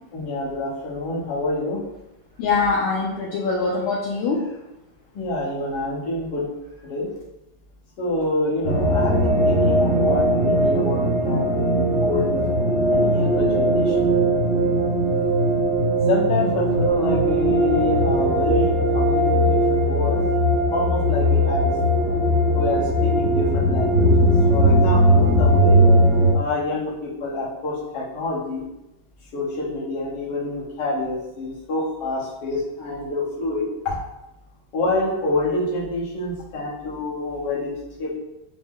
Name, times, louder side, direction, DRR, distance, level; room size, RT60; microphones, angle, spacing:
voice 1, 0.1-1.8 5.1-6.5 6.8-7.1 8.0-12.5 12.9-14.0 16.1-20.2 20.7-21.7 22.5-25.8 26.3-28.6 29.3-34.0 34.7-38.1, left 2 dB, 60° left, -6 dB, 1.6 m, -27 dB
voice 2, 2.4-4.5, left 4 dB, 75° left, -5 dB, 1.4 m, -23 dB
sound 1, 8.6-26.3, right 1 dB, 85° right, 0.6 m, -19 dB
5.2 x 2.1 x 3.5 m, 0.92 s
omnidirectional pair, 2.3 m